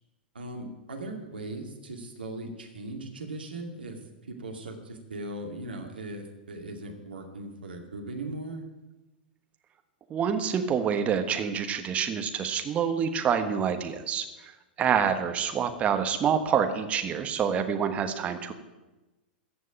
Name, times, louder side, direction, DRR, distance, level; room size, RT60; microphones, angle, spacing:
voice 1, 0.3-4.0 4.3-8.7, right 2 dB, 70° right, 3 dB, 2.2 m, -38 dB
voice 2, 10.1-18.5, right 7 dB, 25° right, 6 dB, 1.4 m, -27 dB
14.5 x 6.3 x 9.1 m, 1.1 s
figure-of-eight pair, 100°, 5 cm